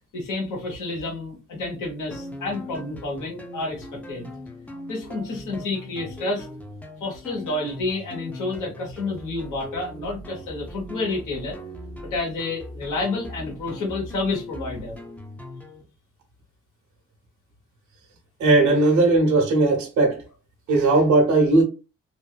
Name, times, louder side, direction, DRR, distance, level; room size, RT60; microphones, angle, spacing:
voice 1, 0.1-4.3 4.9-6.5 7.0-11.5 12.1-15.0, left 2 dB, 90° left, 1.2 m, -29 dB
sound 1, 2.1-15.8, left 1 dB, 5° left, 0.4 m, -40 dB
voice 2, 18.4-20.2 20.7-21.6, right 2 dB, 70° right, 0.9 m, -18 dB
2.7 x 2.2 x 2.2 m
cardioid pair, 90°, 30 cm